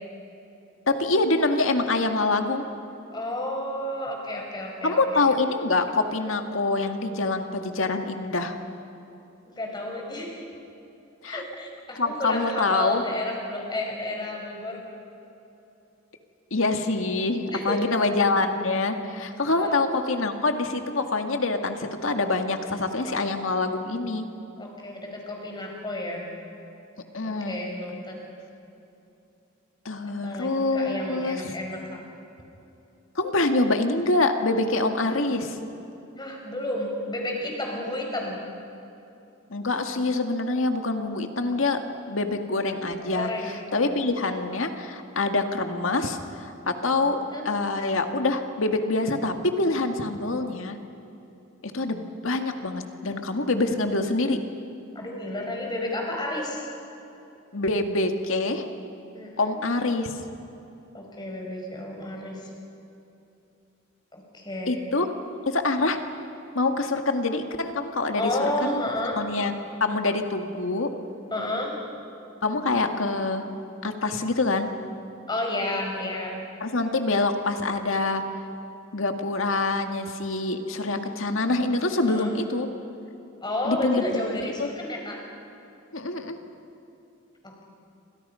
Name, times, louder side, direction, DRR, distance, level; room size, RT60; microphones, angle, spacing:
voice 1, 0.9-2.6 4.8-8.6 11.2-11.4 12.0-13.0 16.5-24.2 27.1-27.6 29.9-31.4 33.2-35.6 39.5-41.8 42.1-43.3 43.7-50.8 51.7-54.4 57.5-58.7 59.4-60.1 64.7-65.1 65.5-66.0 66.5-68.3 68.6-68.8 69.2-69.5 69.8-70.9 72.4-73.5 73.8-74.7 76.6-78.2 78.9-82.7 83.6-84.0 84.6-84.7 85.9-86.4, left 2 dB, 80° left, 5 dB, 1.9 m, -25 dB
voice 2, 3.1-5.2 9.6-10.3 11.3-14.8 17.5-17.8 19.5-19.8 23.0-23.2 24.6-26.2 27.2-28.2 30.2-31.8 36.2-38.4 43.1-43.6 47.0-47.5 55.0-56.7 59.1-59.6 60.9-62.5 64.1-64.8 68.1-69.2 71.3-71.8 75.3-76.4 82.0-82.3 83.4-85.2 87.4-87.6, left 1 dB, 20° left, 0 dB, 5.2 m, -31 dB
28.5 x 25.5 x 5.7 m, 2.9 s
head